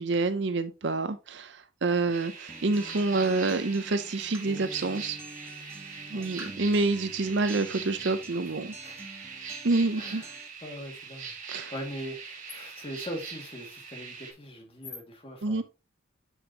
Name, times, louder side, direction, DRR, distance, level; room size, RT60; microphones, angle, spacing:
voice 1, 0.0-5.2 6.1-8.7 9.6-10.2 11.5-11.7 15.4-15.6, right 3 dB, 65° right, 0.7 m, -27 dB
sound 1, 2.1-14.3, right 5 dB, 40° right, 2.1 m, -42 dB
Acoustic guitar, 2.5-10.5, right 1 dB, 15° right, 1.4 m, -47 dB
voice 2, 9.9-10.3 10.6-15.6, equal, 30° left, 2.1 m, -41 dB
7.1 x 7.0 x 2.9 m
head